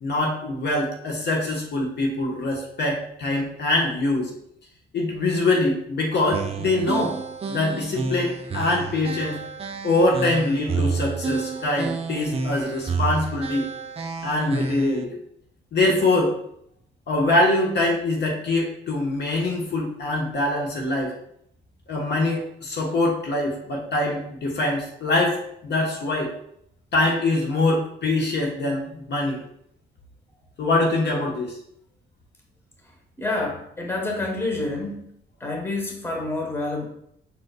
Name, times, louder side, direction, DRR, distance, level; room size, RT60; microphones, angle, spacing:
voice 1, 0.0-4.3 4.9-7.2 7.5-9.4 9.8-13.7 14.2-15.1 15.7-16.4 17.1-21.1 21.9-25.4 25.6-26.3 26.9-29.4 30.6-31.6, left 2 dB, 60° left, 0 dB, 1.2 m, -23 dB
sound 1, 6.3-15.0, right 4 dB, 30° right, 0.5 m, -30 dB
voice 2, 33.2-35.1 35.4-36.9, left 2 dB, 10° left, 0 dB, 1.1 m, -28 dB
5.5 x 3.9 x 2.3 m, 0.71 s
cardioid pair, 90°, 20 cm